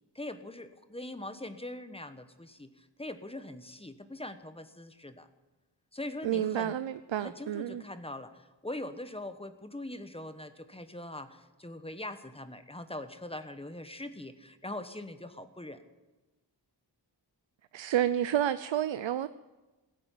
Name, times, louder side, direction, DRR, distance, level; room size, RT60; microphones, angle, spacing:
voice 1, 0.1-5.3 5.9-6.7 7.2-15.8, left 1 dB, 15° left, 1.1 m, -42 dB
voice 2, 6.2-7.8 17.7-19.3, right 11 dB, 90° right, 0.6 m, -30 dB
16.0 x 8.7 x 9.1 m
wide cardioid pair, 115°, 44 cm